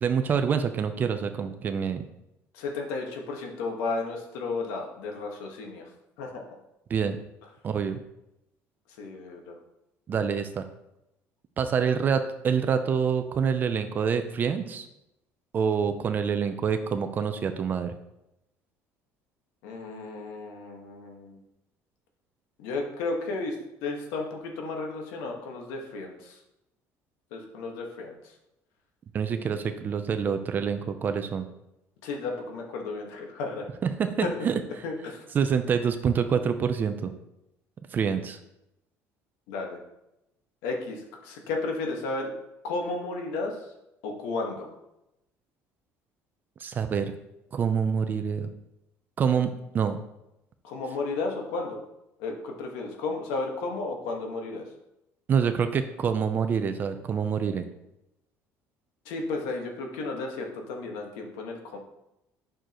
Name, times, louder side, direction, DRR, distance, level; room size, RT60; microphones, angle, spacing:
voice 1, 0.0-2.0 6.9-7.2 7.6-8.0 10.1-10.6 11.6-14.9 15.5-17.9 29.1-31.5 33.8-34.5 35.3-37.1 37.9-38.4 46.6-47.1 47.5-48.5 49.2-50.0 55.3-57.7, right 6 dB, 35° right, 8 dB, 0.5 m, -26 dB
voice 2, 2.5-5.9 6.2-6.4 9.0-9.5 19.6-21.4 22.6-23.6 23.8-26.4 27.3-28.1 32.0-33.7 34.2-35.2 39.5-39.8 40.6-42.3 42.6-43.6 44.0-44.7 50.6-51.8 52.2-54.6 59.0-61.8, left 3 dB, 90° left, 2 dB, 1.5 m, -33 dB
9.0 x 6.4 x 3.0 m, 0.88 s
cardioid pair, 135°, 6 cm